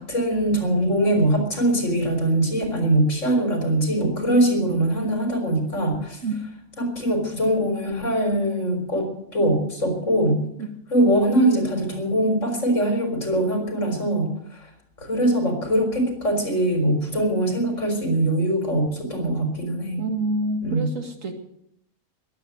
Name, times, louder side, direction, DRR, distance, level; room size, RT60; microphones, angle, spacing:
voice 1, 0.0-6.2 6.8-10.4 10.9-14.7 15.0-20.0 20.6-21.0, right 1 dB, 65° left, 4 dB, 4.5 m, -22 dB
voice 2, 20.0-21.3, right 2 dB, 75° right, 4 dB, 2.5 m, -27 dB
20.5 x 8.5 x 7.9 m, 0.75 s
omnidirectional pair, 1.4 m